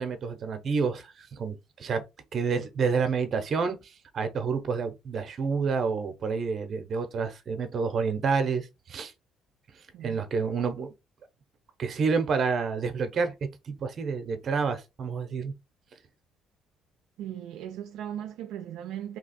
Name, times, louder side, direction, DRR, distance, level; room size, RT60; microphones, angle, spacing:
voice 1, 0.0-2.0 2.3-9.1 10.0-10.9 11.8-13.3 13.7-15.5, right 5 dB, 45° right, 0.7 m, -29 dB
voice 2, 9.9-10.3 17.2-19.2, right 10 dB, 80° right, 0.4 m, -38 dB
2.9 x 2.3 x 4.1 m
cardioid pair, 105°, 0 cm